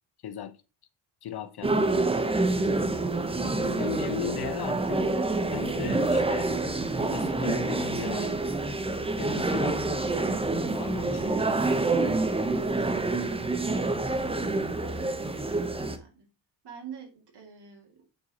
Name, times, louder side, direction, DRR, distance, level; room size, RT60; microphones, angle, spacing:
voice 1, 0.2-0.6 1.2-2.3 3.4-5.1 5.5-6.5 7.1-8.3 9.2-9.8 10.7-11.5, left 9 dB, 55° left, 0.8 m, -37 dB
sound 1, 1.6-16.0, right 2 dB, 10° right, 0.7 m, -27 dB
voice 2, 12.4-12.9 15.0-16.3 16.6-18.2, right 7 dB, 60° right, 2.5 m, -47 dB
8.6 x 4.7 x 4.1 m
wide cardioid pair, 150°, 45 cm